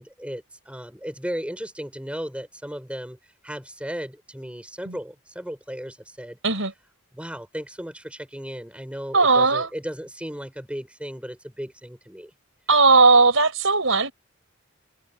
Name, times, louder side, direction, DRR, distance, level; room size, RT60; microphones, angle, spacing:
voice 1, 0.0-6.4 7.1-12.3, equal, 5° right, 5.9 m, -35 dB
voice 2, 9.1-9.7 12.7-14.1, right 3 dB, 65° right, 5.0 m, -17 dB
head